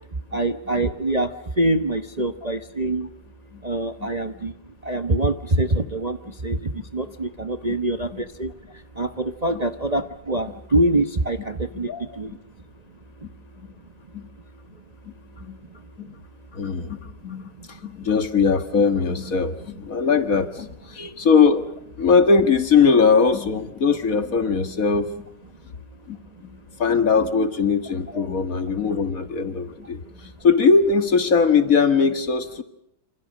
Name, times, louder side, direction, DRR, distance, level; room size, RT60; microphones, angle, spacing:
voice 1, 0.3-1.3 1.6-3.1 3.6-4.5 4.8-6.2 6.4-8.5 9.0-11.9 12.2-12.3 28.1-28.2, right 1 dB, 25° right, 9 dB, 1.1 m, -24 dB
voice 2, 16.5-21.7 22.0-25.1 26.1-32.6, left 5 dB, 50° left, 10 dB, 2.1 m, -20 dB
28.0 x 27.5 x 6.5 m, 0.74 s
omnidirectional pair, 1.9 m